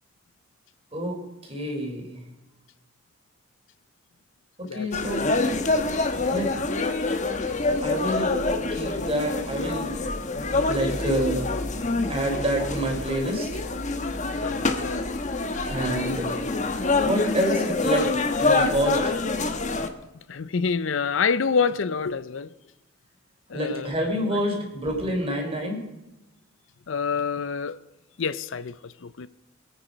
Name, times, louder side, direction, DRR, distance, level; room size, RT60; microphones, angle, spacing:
voice 1, 0.9-2.2 4.6-5.4 6.2-6.5 7.8-8.4 8.7-10.0 10.6-11.6 12.1-13.5 15.7-16.3 17.0-19.1 23.5-25.8, right 1 dB, 30° right, 3.7 m, -28 dB
voice 2, 4.6-5.5 14.4-15.1 20.3-22.5 23.5-23.9 24.3-24.4 26.9-27.8 28.2-29.3, left 5 dB, 70° left, 0.6 m, -27 dB
sound 1, 4.9-19.9, left 3 dB, 35° left, 1.1 m, -26 dB
22.5 x 9.1 x 5.1 m
head